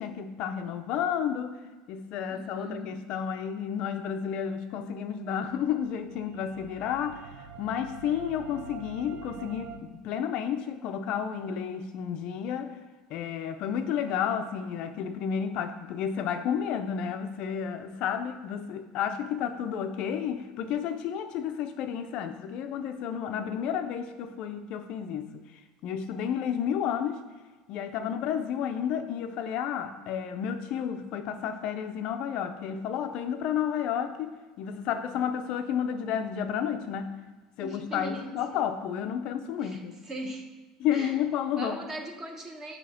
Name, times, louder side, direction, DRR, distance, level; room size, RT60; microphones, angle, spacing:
voice 1, 0.0-1.6 1.9-12.8 13.1-25.4 25.8-27.2 27.7-34.3 34.6-37.1 37.6-40.0 40.8-41.8, left 8 dB, 45° left, 7 dB, 0.4 m, -31 dB
voice 2, 2.3-2.9 37.6-38.6 39.6-40.4 40.9-41.2 41.6-42.8, right 1 dB, 20° right, 3 dB, 0.7 m, -39 dB
sound 1, 5.4-9.8, right 5 dB, 75° right, 0.5 m, -46 dB
8.2 x 2.8 x 5.5 m, 1.3 s
cardioid pair, 170°, 2 cm